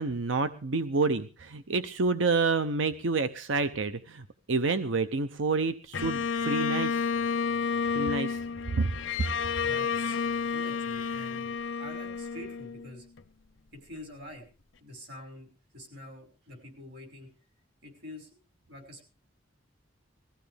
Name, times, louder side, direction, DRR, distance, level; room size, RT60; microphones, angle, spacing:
voice 1, 0.0-7.1 7.9-8.4 8.7-8.9, right 4 dB, 75° right, 11 dB, 0.8 m, -28 dB
Bowed string instrument, 5.9-13.2, left 6 dB, 85° left, 0.7 m, -31 dB
voice 2, 9.6-13.1 13.7-14.4 14.8-17.3 17.8-18.3 18.7-19.1, left 1 dB, 55° right, 4 dB, 5.7 m, -46 dB
21.0 x 15.0 x 3.4 m, 0.35 s
head